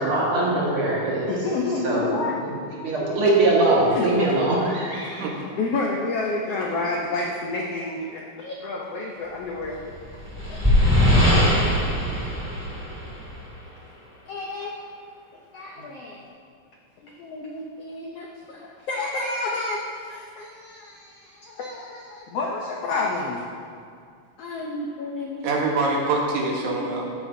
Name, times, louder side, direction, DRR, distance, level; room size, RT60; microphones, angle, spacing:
voice 1, 0.0-1.3 1.8-2.1 2.4-2.5 2.8-5.3, right 2 dB, 45° right, -5 dB, 2.3 m, -22 dB
voice 2, 1.3-2.4 3.9-4.3 4.8-4.9 5.6-10.2 10.5-10.7 14.3-14.8 15.5-16.2 17.0-23.4 24.4-25.5 26.7-26.9, left 3 dB, 90° left, -1 dB, 1.3 m, -30 dB
sound 1, 9.8-13.5, equal, 5° right, 1.7 m, -20 dB
voice 3, 25.4-27.2, right 3 dB, 70° right, -2 dB, 2.6 m, -25 dB
14.0 x 9.4 x 2.7 m, 2.2 s
omnidirectional pair, 3.8 m